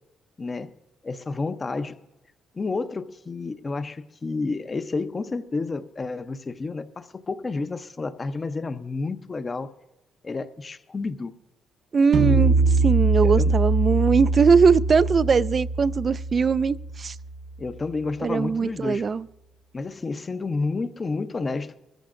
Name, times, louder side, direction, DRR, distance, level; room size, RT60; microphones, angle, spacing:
voice 1, 0.4-0.7 1.0-2.0 2.5-9.7 10.2-11.3 13.2-13.6 17.6-19.1 19.7-21.7, left 3 dB, 30° left, 0.7 m, -30 dB
voice 2, 11.9-17.2 18.2-19.2, right 5 dB, 40° right, 0.3 m, -21 dB
sound 1, 12.1-17.5, right 3 dB, 75° right, 0.9 m, -23 dB
22.0 x 14.0 x 2.5 m
cardioid pair, 90°, 0 cm